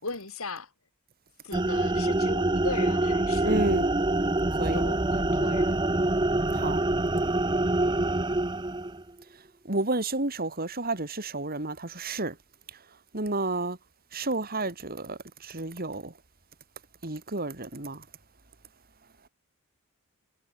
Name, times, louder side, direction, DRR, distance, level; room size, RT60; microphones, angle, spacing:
voice 1, 0.0-0.7 1.4-3.7 4.7-5.8, left 3 dB, 75° left, 4.3 m, -37 dB
sound 1, 1.5-9.0, right 2 dB, 20° right, 1.0 m, -25 dB
voice 2, 3.4-3.9 4.5-4.8 6.5-6.8 9.6-12.4 13.1-13.8 14.1-16.1 17.0-18.0, right 2 dB, 45° right, 3.0 m, -30 dB
head